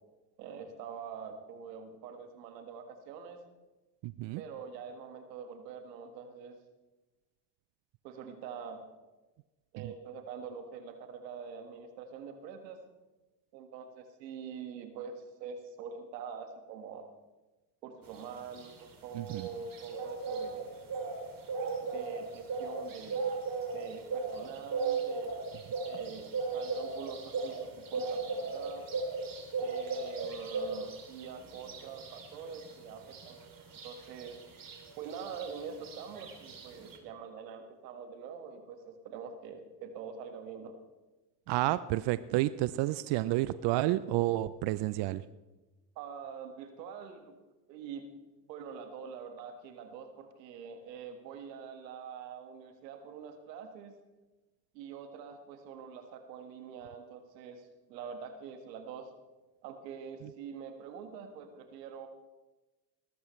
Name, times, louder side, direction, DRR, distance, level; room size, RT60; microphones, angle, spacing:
voice 1, 0.4-3.4 4.4-6.6 8.0-8.8 9.7-12.8 13.5-17.1 17.8-20.7 21.9-23.3 23.7-25.3 25.9-28.9 29.6-33.4 33.8-34.4 35.0-40.8 46.0-47.4 47.7-48.0 48.5-53.9 54.7-59.1 59.6-62.1, right 6 dB, 90° right, 6 dB, 1.8 m, -45 dB
voice 2, 4.0-4.4 9.8-9.9 19.1-19.5 41.5-45.2 60.2-60.3, right 16 dB, 60° right, 15 dB, 0.6 m, -30 dB
sound 1, 18.1-37.0, right 4 dB, 45° right, 3.1 m, -37 dB
20.0 x 13.5 x 3.2 m, 1.1 s
hypercardioid pair, 75°, 48 cm